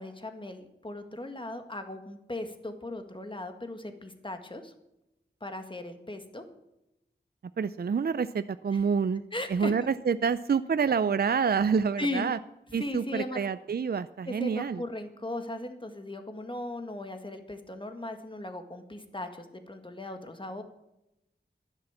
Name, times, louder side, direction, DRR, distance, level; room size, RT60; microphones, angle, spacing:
voice 1, 0.0-4.7 5.4-6.4 8.7-8.8 9.3-9.7 12.0-12.3 12.8-13.4 14.3-20.6, left 1 dB, 25° left, 6 dB, 1.7 m, -37 dB
voice 2, 7.6-9.2 9.5-12.4 12.7-14.8, right 6 dB, 55° right, 14 dB, 0.4 m, -27 dB
11.5 x 10.5 x 7.2 m, 0.89 s
wide cardioid pair, 65°, 19 cm